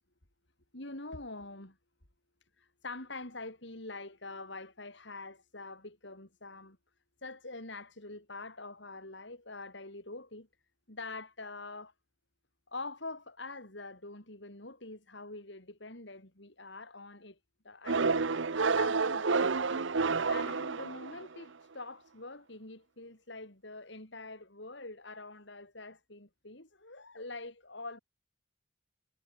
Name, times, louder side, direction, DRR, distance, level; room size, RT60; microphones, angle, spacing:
voice 1, 0.7-1.8 2.6-6.8 7.2-10.5 10.9-11.9 12.7-17.4 17.6-18.3 18.8-19.9 20.2-28.0, left 2 dB, 60° left, 4.3 m, -45 dB
sound 1, 17.9-21.4, right 4 dB, 70° right, 0.8 m, -29 dB
head